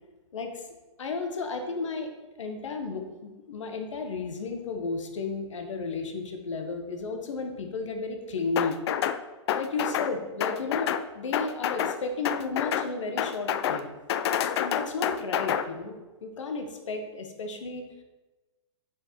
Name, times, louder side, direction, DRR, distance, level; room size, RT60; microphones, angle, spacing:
voice 1, 0.3-0.6 1.0-2.1 2.4-8.8 9.5-13.9 14.6-17.9, left 4 dB, 85° left, 5 dB, 1.2 m, -33 dB
sound 1, 8.6-9.2 9.5-10.1 10.4-11.0 11.3-12.0 12.2-12.9 13.2-13.8 14.1-15.6, left 9 dB, 60° left, 0.5 m, -28 dB
7.4 x 5.0 x 4.3 m, 1.2 s
hypercardioid pair, 135°, 15 cm